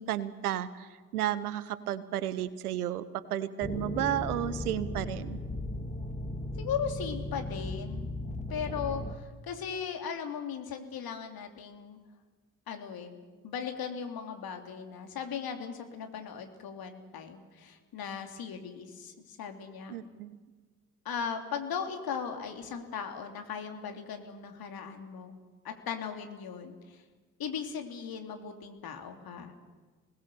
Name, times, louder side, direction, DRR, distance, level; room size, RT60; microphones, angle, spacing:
voice 1, 0.0-5.4 19.9-20.4, right 11 dB, 80° right, 17 dB, 0.9 m, -33 dB
sound 1, 3.6-9.1, left 1 dB, 15° left, 2.2 m, -37 dB
voice 2, 6.6-8.1 8.5-12.0 12.7-20.0 21.0-25.3 25.6-27.0 27.4-29.5, left 7 dB, 55° left, 5 dB, 2.8 m, -38 dB
26.5 x 19.5 x 6.9 m, 1.4 s
figure-of-eight pair, 45°, 44 cm